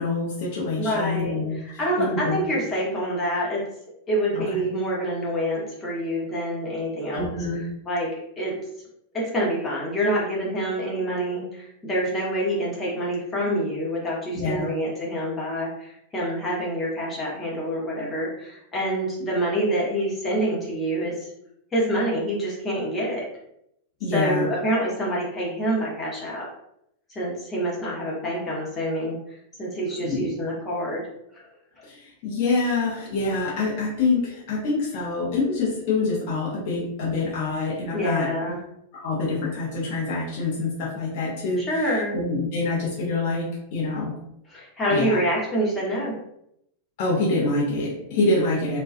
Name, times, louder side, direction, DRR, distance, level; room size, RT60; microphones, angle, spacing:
voice 1, 0.0-1.6 2.0-2.5 4.3-4.6 7.1-7.6 14.3-14.7 24.0-24.5 30.0-30.3 31.8-38.3 39.0-44.1 44.9-45.2 47.0-48.8, left 3 dB, 50° left, -5 dB, 0.7 m, -26 dB
voice 2, 0.7-3.6 4.1-7.3 7.9-8.1 8.4-8.6 9.1-21.3 21.7-23.2 24.1-26.5 27.1-31.1 31.3-31.4 37.9-38.6 41.6-42.1 44.5-46.1, equal, 20° left, -5 dB, 0.9 m, -26 dB
2.3 x 2.2 x 2.5 m, 0.77 s
figure-of-eight pair, 90°, 0 cm